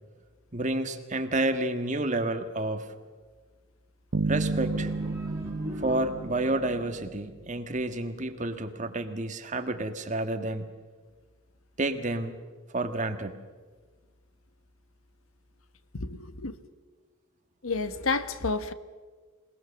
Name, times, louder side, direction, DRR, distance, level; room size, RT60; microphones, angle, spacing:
voice 1, 0.5-2.8 4.3-4.9 5.8-10.7 11.8-12.4 12.7-13.3, right 2 dB, 35° right, 8 dB, 1.6 m, -30 dB
sound 1, 4.1-7.5, right 3 dB, 60° right, 0.6 m, -32 dB
sound 2, 4.5-6.6, equal, 10° right, 3.9 m, -40 dB
voice 2, 16.0-16.5 17.6-18.7, left 3 dB, 75° left, 12 dB, 1.3 m, -30 dB
27.0 x 19.0 x 7.1 m, 1.5 s
head